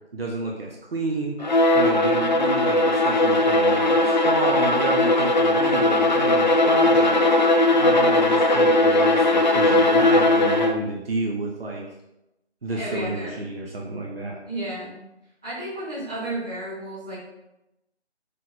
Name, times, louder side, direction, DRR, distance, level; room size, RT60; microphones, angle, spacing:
voice 1, 0.1-1.3 1.7-7.2 7.8-11.8 12.6-14.4, right 2 dB, 55° right, -2 dB, 1.2 m, -30 dB
Bowed string instrument, 1.4-10.9, left 2 dB, 40° left, 0.5 m, -19 dB
voice 2, 12.7-13.4 14.5-14.9 15.4-17.2, right 1 dB, 5° right, -15 dB, 0.7 m, -32 dB
6.5 x 3.7 x 4.3 m, 0.91 s
figure-of-eight pair, 155°, 34 cm